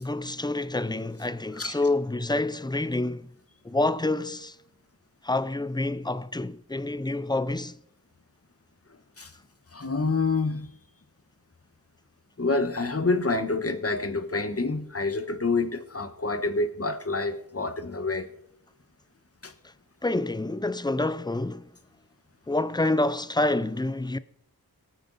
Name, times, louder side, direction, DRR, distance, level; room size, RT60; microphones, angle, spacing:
voice 1, 0.0-3.3 3.6-4.6 5.2-7.8 20.0-21.7 22.5-24.2, left 2 dB, 10° left, 0.6 m, -27 dB
voice 2, 9.7-10.7 12.4-18.3 19.4-19.5, left 3 dB, 35° left, 1.4 m, -27 dB
24.5 x 9.2 x 4.1 m
wide cardioid pair, 65°, 38 cm